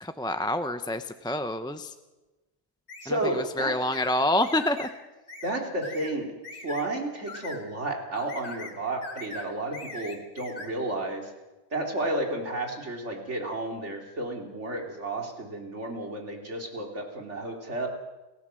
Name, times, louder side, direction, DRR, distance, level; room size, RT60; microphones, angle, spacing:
voice 1, 0.0-1.9 3.1-4.9, left 1 dB, 5° left, 9 dB, 0.7 m, -27 dB
sound 1, 2.9-3.1 3.9-4.1 4.4-4.9 5.3-5.5 5.8-6.1 6.4-6.9 7.3-7.6 8.2-8.8 9.0-9.5 9.7-10.7, left 3 dB, 65° left, 2.9 m, -41 dB
voice 2, 3.0-3.8 5.4-6.3 6.6-11.3 11.7-17.9, right 2 dB, 85° right, 2 dB, 3.5 m, -32 dB
29.5 x 15.0 x 7.7 m, 1.1 s
omnidirectional pair, 1.2 m